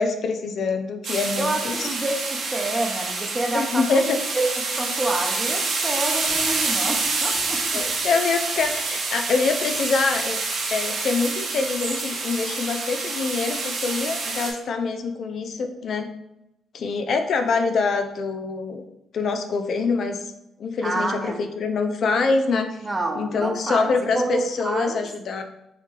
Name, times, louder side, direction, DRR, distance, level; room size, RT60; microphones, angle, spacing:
voice 1, 0.0-1.9 3.5-4.2 7.3-7.4 7.7-10.4 10.7-16.1 16.7-18.8 19.1-20.3 20.6-22.9 23.2-25.4, left 4 dB, 60° left, 6 dB, 0.4 m, -25 dB
sound 1, 1.0-14.5, right 3 dB, 70° right, 1.1 m, -27 dB
voice 2, 1.4-4.1 4.3-4.4 4.8-7.6 20.8-21.4 22.8-25.0, right 2 dB, 20° right, 2 dB, 0.7 m, -28 dB
6.2 x 2.2 x 3.3 m, 0.85 s
cardioid pair, 90°, 0 cm